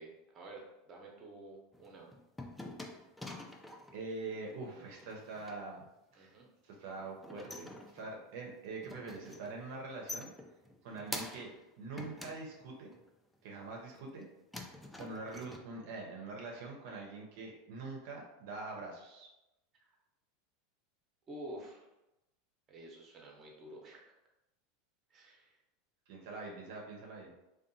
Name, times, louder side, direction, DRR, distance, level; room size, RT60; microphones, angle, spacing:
voice 1, 0.0-2.1 4.5-4.9 6.1-6.5 10.9-11.2 19.8-19.9 21.3-21.9 22.7-24.1 25.1-25.6, right 1 dB, 30° right, -1 dB, 0.7 m, -50 dB
sound 1, 1.7-4.0 5.0-5.6 7.0-8.3 8.6-9.6 9.8-11.6 12.0-13.1 13.6-14.2 14.5-15.6, left 2 dB, 5° left, 0.3 m, -47 dB
voice 2, 3.9-5.9 6.1-6.3 6.6-10.3 10.8-11.5 11.8-12.9 13.4-14.3 15.0-19.3 26.1-27.3, right 3 dB, 70° right, -1 dB, 0.5 m, -44 dB
2.6 x 2.2 x 2.6 m, 0.94 s
supercardioid pair, 120°, 0 cm